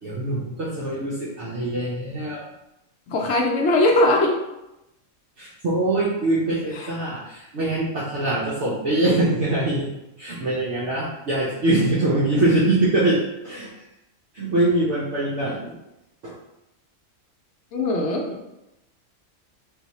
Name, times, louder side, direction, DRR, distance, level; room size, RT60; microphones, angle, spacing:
voice 1, 0.0-2.4 5.4-9.9 10.2-13.7 14.3-15.7 16.2-16.3, right 2 dB, 65° right, -7 dB, 1.1 m, -23 dB
voice 2, 3.1-4.4 6.7-6.9 17.7-18.4, left 2 dB, 70° left, 1 dB, 0.9 m, -20 dB
4.1 x 2.3 x 4.1 m, 0.91 s
omnidirectional pair, 1.3 m